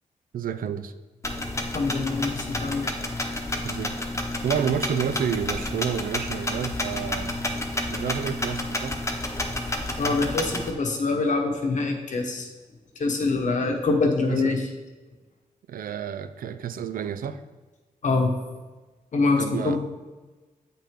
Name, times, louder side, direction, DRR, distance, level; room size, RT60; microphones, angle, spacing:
voice 1, 0.3-0.9 3.6-3.9 4.4-7.4 7.9-9.1 14.3-14.6 15.7-17.4 19.4-19.8, right 8 dB, 90° right, 12 dB, 0.4 m, -30 dB
sound 1, 1.2-10.7, left 1 dB, 20° left, 0.9 m, -30 dB
voice 2, 1.7-2.9 10.0-12.5 13.0-14.7 18.0-18.3 19.1-19.8, left 3 dB, 60° left, 3 dB, 1.1 m, -24 dB
8.5 x 5.8 x 3.7 m, 1.3 s
wide cardioid pair, 105°, 14 cm